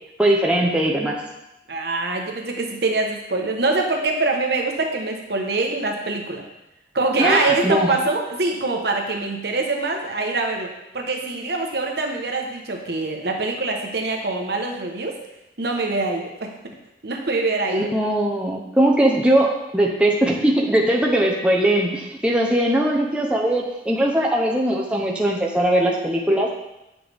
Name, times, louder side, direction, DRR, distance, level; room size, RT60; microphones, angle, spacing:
voice 1, 0.2-1.2 7.2-7.9 17.7-26.5, right 1 dB, 5° right, -2 dB, 0.7 m, -20 dB
voice 2, 1.7-6.4 6.9-10.7 10.9-15.2 15.6-16.5 17.0-17.9, right 3 dB, 60° right, 2 dB, 1.1 m, -24 dB
8.6 x 6.2 x 3.5 m, 0.91 s
head